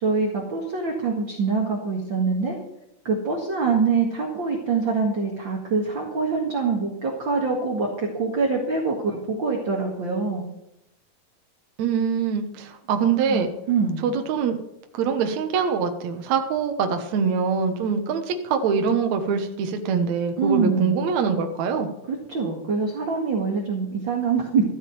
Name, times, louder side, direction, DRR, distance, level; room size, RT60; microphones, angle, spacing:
voice 1, 0.0-2.6 3.0-10.4 13.3-14.0 20.4-21.0 22.1-24.6, right 4 dB, 40° right, -1 dB, 2.3 m, -24 dB
voice 2, 11.8-13.5 14.0-14.6 14.9-21.9, right 6 dB, 65° right, 5 dB, 2.4 m, -24 dB
14.0 x 6.4 x 9.1 m, 0.83 s
omnidirectional pair, 3.6 m